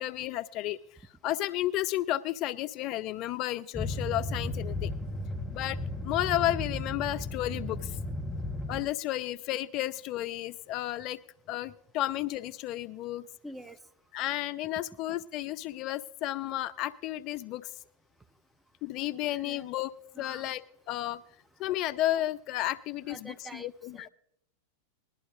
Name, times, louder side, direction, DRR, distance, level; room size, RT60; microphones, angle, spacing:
voice 1, 0.0-4.9 5.5-8.0 8.7-11.2 11.5-13.3 14.1-17.7 18.8-19.9 20.2-21.2 21.6-24.1, left 14 dB, 40° left, 15 dB, 0.4 m, -32 dB
sound 1, 3.7-8.8, left 2 dB, 10° left, 2.6 m, -35 dB
voice 2, 13.4-13.8 19.4-19.7 20.2-20.5 23.1-24.1, right 1 dB, 5° right, 8 dB, 0.6 m, -46 dB
20.0 x 12.0 x 2.6 m, 0.72 s
figure-of-eight pair, 90°, 0 cm